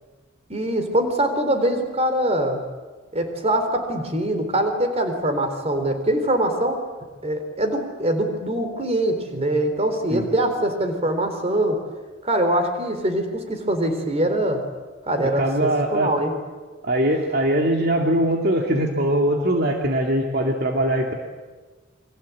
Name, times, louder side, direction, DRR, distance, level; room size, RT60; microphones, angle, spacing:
voice 1, 0.5-2.6 3.1-6.8 7.2-11.8 12.2-14.6 15.1-16.3, right 1 dB, 30° right, 6 dB, 4.0 m, -23 dB
voice 2, 15.4-16.1 16.8-21.1, right 1 dB, 55° right, 2 dB, 2.4 m, -21 dB
29.0 x 23.5 x 8.5 m, 1.3 s
head